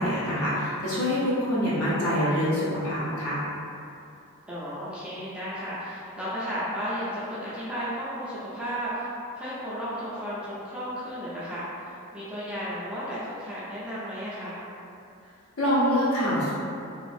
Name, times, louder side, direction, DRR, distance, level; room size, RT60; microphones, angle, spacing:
voice 1, 0.0-3.4 15.6-16.5, equal, 70° left, -9 dB, 0.8 m, -25 dB
voice 2, 4.5-14.6, equal, 5° right, -10 dB, 0.4 m, -34 dB
2.7 x 2.4 x 2.4 m, 2.6 s
head